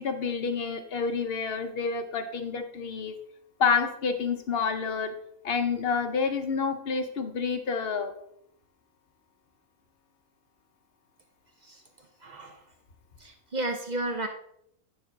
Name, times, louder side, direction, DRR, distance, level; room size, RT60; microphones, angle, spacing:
voice 1, 0.0-3.1 3.6-5.1 5.4-8.1, left 5 dB, 50° left, 7 dB, 0.8 m, -28 dB
voice 2, 12.2-12.6 13.2-14.3, right 2 dB, 50° right, 4 dB, 0.5 m, -33 dB
9.4 x 3.4 x 5.8 m, 0.73 s
omnidirectional pair, 1.6 m